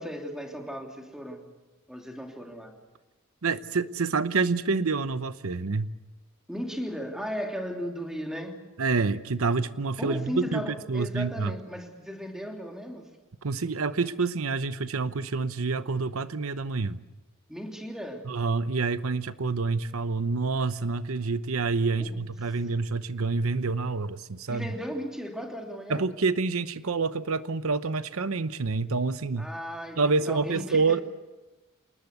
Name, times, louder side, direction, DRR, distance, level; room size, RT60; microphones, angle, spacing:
voice 1, 0.0-1.5 1.9-2.7 6.5-8.6 10.0-13.1 17.5-18.3 22.0-22.2 24.5-26.0 29.4-30.9, equal, 5° right, 2 dB, 3.1 m, -36 dB
voice 2, 3.4-5.9 8.8-11.5 13.4-17.0 18.3-24.7 25.9-29.5 30.0-31.0, right 4 dB, 80° right, 13 dB, 0.8 m, -27 dB
28.0 x 20.0 x 8.2 m, 1.1 s
head